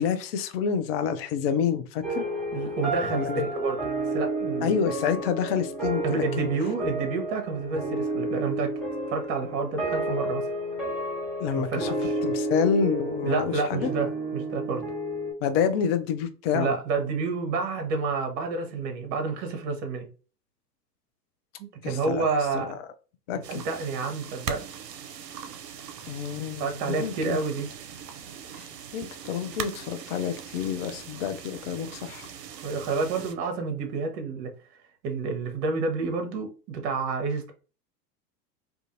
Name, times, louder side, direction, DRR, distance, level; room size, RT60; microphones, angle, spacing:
voice 1, 0.0-2.3 3.1-3.4 4.6-6.5 11.4-11.9 12.2-13.9 15.4-16.8 21.8-22.3 22.5-22.8 23.3-23.6 26.1-27.4 28.5-28.7 28.9-32.3, left 7 dB, 40° left, 0.4 m, -28 dB
sound 1, 2.0-15.3, right 1 dB, ahead, 1.0 m, -31 dB
voice 2, 2.5-3.8 4.1-4.7 6.0-8.7 9.1-10.4 11.5-12.2 13.2-14.9 16.5-20.1 21.6-22.7 23.5-24.6 26.6-27.7 32.6-34.5 35.0-37.5, right 4 dB, 45° right, 0.8 m, -29 dB
sound 2, 23.4-33.3, right 7 dB, 75° right, 0.6 m, -40 dB
2.5 x 2.4 x 2.6 m
figure-of-eight pair, 85°, 49 cm